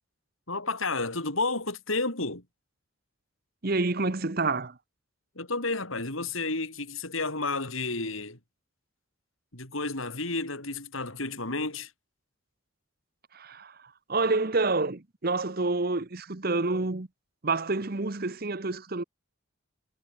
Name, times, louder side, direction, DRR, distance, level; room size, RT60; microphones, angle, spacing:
voice 1, 0.5-2.4 5.4-8.4 9.5-11.9, left 3 dB, 75° left, 6.3 m, -31 dB
voice 2, 3.6-4.8 13.3-17.1 17.4-19.0, right 3 dB, 45° right, 1.1 m, -28 dB
head